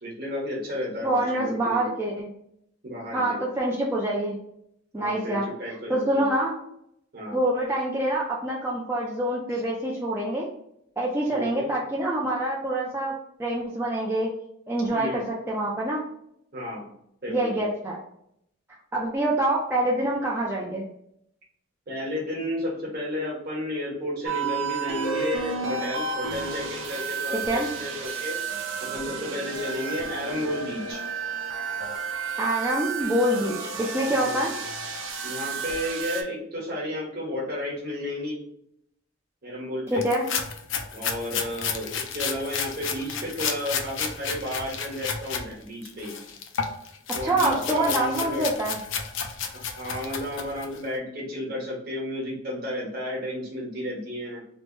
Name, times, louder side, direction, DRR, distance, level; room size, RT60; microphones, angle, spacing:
voice 1, 0.0-1.9 2.8-3.4 4.9-6.3 7.1-7.4 11.3-11.7 14.9-15.2 16.5-16.8 17.2-17.7 21.9-28.4 28.8-31.0 34.2-34.5 35.2-38.4 39.4-40.0 40.9-46.1 47.1-48.5 49.5-54.4, left 1 dB, 50° right, -4 dB, 1.2 m, -32 dB
voice 2, 1.0-2.3 3.1-4.4 4.9-5.5 5.9-6.5 7.3-10.5 11.0-13.1 13.4-14.3 14.7-16.0 17.3-18.0 18.9-20.8 27.5-27.7 32.4-34.5 39.9-40.3 47.2-48.8, right 1 dB, 10° right, -4 dB, 0.4 m, -26 dB
sound 1, 24.2-36.2, right 5 dB, 70° right, 0.5 m, -32 dB
sound 2, 40.0-45.4 45.8-50.8, left 6 dB, 65° left, 0.4 m, -32 dB
3.1 x 2.1 x 3.1 m, 0.73 s
head